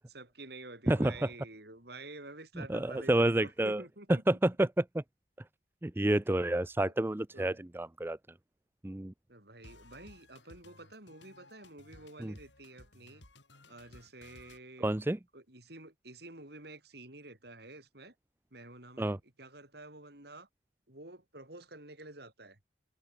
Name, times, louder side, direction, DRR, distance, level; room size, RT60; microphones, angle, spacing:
voice 1, 0.1-4.4 6.8-6.9 7.3-7.6 9.3-13.2 13.7-18.1 18.5-20.5 20.9-22.6, right 2 dB, 60° right, 6.5 m, -50 dB
voice 2, 2.6-3.8 4.3-5.0 5.8-8.2 8.8-9.1 12.2-12.3 14.8-15.2 19.0-19.2, right 1 dB, 10° right, 0.5 m, -29 dB
sound 1, 9.6-14.6, left 2 dB, 80° left, 5.8 m, -57 dB
head